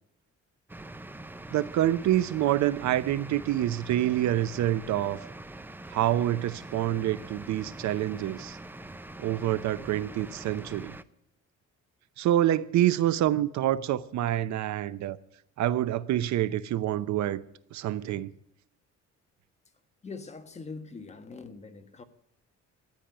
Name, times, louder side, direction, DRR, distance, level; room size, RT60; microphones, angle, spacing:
sound 1, 0.7-11.0, right 2 dB, 5° right, 0.5 m, -44 dB
voice 1, 1.5-5.3 5.9-8.6 9.2-10.9 12.2-15.2 15.6-17.4 17.7-18.3, right 13 dB, 70° right, 0.8 m, -27 dB
voice 2, 20.0-22.0, left 4 dB, 25° left, 1.5 m, -42 dB
13.5 x 10.0 x 8.9 m
cardioid pair, 145°, 29 cm